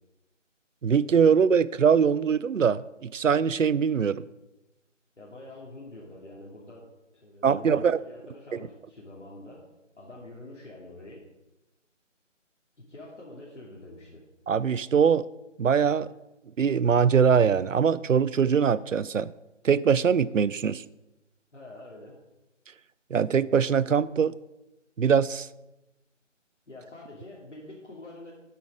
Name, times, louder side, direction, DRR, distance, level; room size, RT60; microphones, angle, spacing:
voice 1, 0.8-4.2 7.4-8.0 14.5-15.3 15.6-16.1 16.6-19.3 19.6-20.8 23.1-24.3 25.0-25.5, right 7 dB, 80° right, 18 dB, 0.6 m, -22 dB
voice 2, 5.2-6.9 7.1-9.6 10.0-11.3 12.8-14.3 21.5-22.2 26.7-28.3, left 2 dB, 65° left, -5 dB, 2.7 m, -46 dB
8.8 x 8.5 x 5.0 m, 1.0 s
figure-of-eight pair, 165°, 38 cm